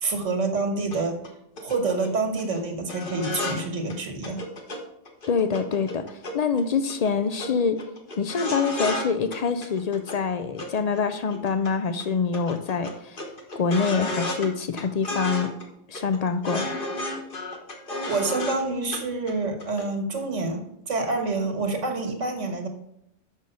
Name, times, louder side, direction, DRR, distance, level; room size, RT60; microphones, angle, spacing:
voice 1, 0.0-1.2 1.6-4.4 18.1-22.7, right 3 dB, 80° right, 4 dB, 1.6 m, -27 dB
sound 1, 0.9-1.0 1.2-1.3 1.6-2.1 2.4-2.6 2.9-3.6 3.9-4.0 4.2-4.8 5.0-6.6 6.9-7.1 7.4-7.5 7.8-9.1 9.3-10.2 10.6-11.7 12.0-12.1 12.3-14.5 14.8-15.6 15.9-18.6 18.9-19.0 19.3-19.9 20.1-20.2, left 1 dB, 45° left, 1.3 m, -32 dB
voice 2, 5.3-6.0 6.3-7.8 8.2-13.3 13.6-15.5 15.9-16.8, left 5 dB, 70° left, 10 dB, 0.3 m, -25 dB
6.3 x 6.2 x 5.4 m, 0.79 s
omnidirectional pair, 1.3 m